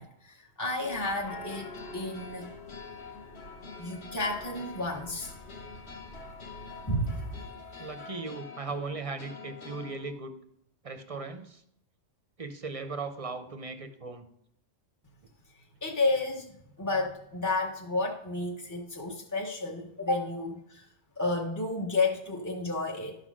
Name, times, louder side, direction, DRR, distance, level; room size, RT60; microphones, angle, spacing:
voice 1, 0.0-2.5 3.8-5.3 6.9-7.3 15.8-16.5 16.8-20.9 21.2-23.2, left 2 dB, 20° left, -1 dB, 0.6 m, -31 dB
sound 1, 0.8-7.5, left 1 dB, 80° left, 1.3 m, -48 dB
sound 2, 0.8-10.1, left 4 dB, 60° left, 1.4 m, -47 dB
voice 2, 7.8-10.4 10.8-11.6 12.4-14.3, right 3 dB, 45° right, 8 dB, 0.5 m, -38 dB
11.5 x 4.1 x 6.1 m, 0.76 s
omnidirectional pair, 1.3 m